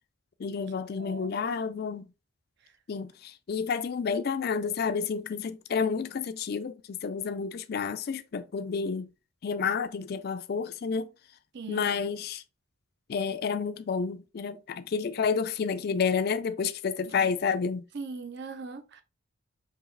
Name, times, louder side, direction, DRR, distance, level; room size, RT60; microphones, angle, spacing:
voice 1, 0.4-2.1 2.9-9.1 9.4-11.1 11.7-12.4 13.1-17.8, left 5 dB, 50° left, 0.3 m, -30 dB
voice 2, 1.0-1.3 11.5-11.9 17.9-19.0, right 4 dB, 55° right, 0.6 m, -40 dB
4.6 x 2.9 x 3.2 m
head